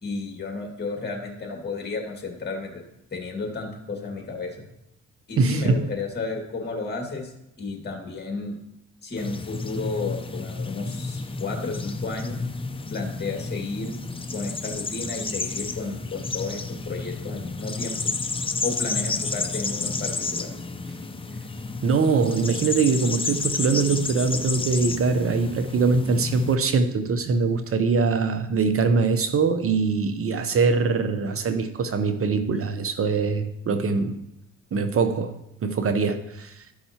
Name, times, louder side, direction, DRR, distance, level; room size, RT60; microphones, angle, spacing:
voice 1, 0.0-2.8 3.1-4.6 5.3-7.3 7.6-8.6 9.0-12.4 12.9-14.0 14.3-18.1 18.6-20.5, left 3 dB, 35° left, 2.1 m, -32 dB
voice 2, 5.4-5.8 21.8-34.2 34.7-36.7, right 4 dB, 50° right, 0.7 m, -23 dB
sound 1, 9.2-26.6, left 3 dB, 20° left, 0.6 m, -31 dB
13.0 x 5.5 x 2.9 m
cardioid pair, 90°, 30 cm